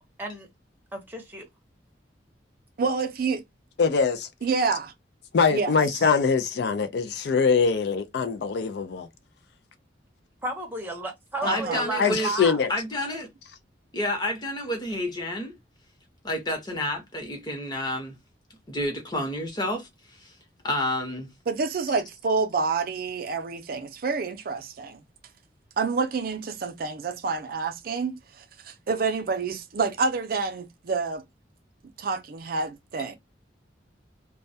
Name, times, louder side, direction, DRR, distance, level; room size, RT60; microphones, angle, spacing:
voice 1, 0.9-1.4 10.4-12.6, right 2 dB, 10° right, 0.6 m, -32 dB
voice 2, 2.8-3.4 4.4-4.9 5.5-5.7 11.4-11.8 21.5-25.0 25.8-31.2 32.0-33.2, right 4 dB, 55° right, 0.4 m, -28 dB
voice 3, 3.8-4.3 5.3-9.1 12.0-12.7, left 5 dB, 60° left, 0.4 m, -23 dB
voice 4, 11.4-12.3 12.7-13.3 13.9-15.5 16.2-18.2 18.7-20.3 20.6-21.3, left 1 dB, 25° left, 0.8 m, -29 dB
2.2 x 2.1 x 2.6 m
head